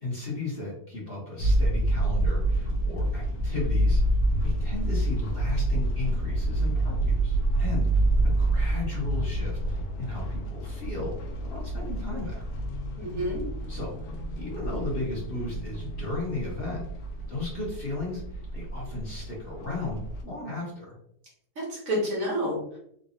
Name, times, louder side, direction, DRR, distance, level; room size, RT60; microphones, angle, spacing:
voice 1, 0.0-4.0 4.4-11.1 11.5-12.5 13.7-14.0 14.4-16.8 17.3-21.0, left 3 dB, 40° left, -6 dB, 1.3 m, -35 dB
sound 1, 1.4-20.2, right 1 dB, 70° left, 1.1 m, -28 dB
voice 2, 13.0-13.5 21.5-22.8, equal, 55° right, -4 dB, 1.6 m, -29 dB
3.7 x 3.0 x 2.6 m, 0.71 s
omnidirectional pair, 1.7 m